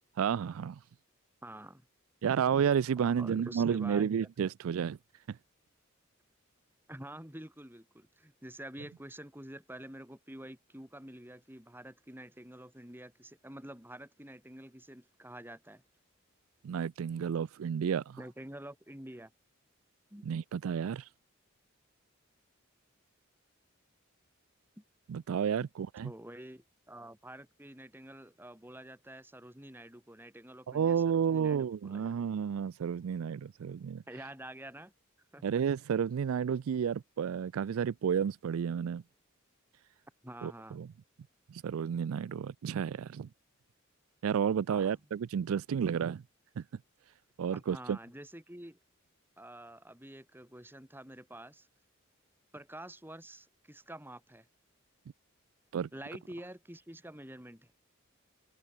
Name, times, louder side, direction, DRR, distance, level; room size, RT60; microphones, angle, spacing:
voice 1, 0.2-0.8 2.2-5.0 5.3-5.4 16.6-18.2 20.3-21.1 25.1-26.1 30.7-34.0 35.4-39.0 40.4-40.9 41.5-43.3 44.2-46.2 46.6-46.7 47.4-48.0 55.7-55.9, right 7 dB, 80° right, 0.4 m, -31 dB
voice 2, 1.4-1.9 3.2-4.3 6.9-15.8 18.2-19.3 20.1-20.3 24.8-24.9 26.0-32.1 34.1-34.9 35.3-35.4 40.2-40.8 44.7-44.9 47.5-48.8 49.4-51.7 52.5-54.5 55.9-57.7, right 1 dB, 10° right, 4.3 m, -48 dB
head